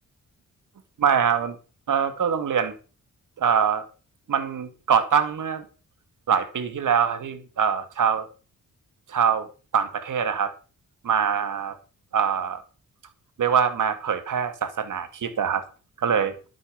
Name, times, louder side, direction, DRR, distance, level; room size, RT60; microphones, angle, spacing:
voice 1, 1.0-1.6 1.9-2.7 3.4-3.9 4.3-5.6 6.3-8.3 9.1-10.5 11.0-11.8 12.1-12.6 13.4-15.6 16.0-16.4, right 7 dB, 70° right, 2.4 m, -24 dB
12.5 x 9.2 x 5.3 m
cardioid pair, 60°, 32 cm